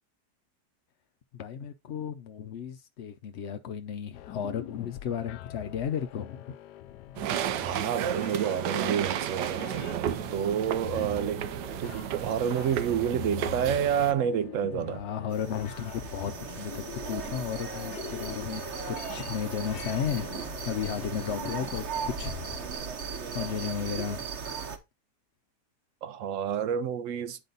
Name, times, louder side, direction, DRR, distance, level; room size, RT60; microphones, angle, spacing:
voice 1, 1.3-6.5 14.7-22.3 22.7-22.8 23.3-24.2, left 8 dB, 60° left, 0.7 m, -34 dB
sound 1, 4.1-22.7, left 14 dB, 80° left, 1.2 m, -44 dB
sound 2, 7.2-14.1, right 10 dB, 85° right, 1.3 m, -33 dB
voice 2, 7.6-11.4 11.8-15.1 26.0-27.4, right 8 dB, 70° right, 0.8 m, -29 dB
sound 3, 15.3-24.8, right 6 dB, 50° right, 1.1 m, -37 dB
10.0 x 3.9 x 3.9 m
omnidirectional pair, 1.8 m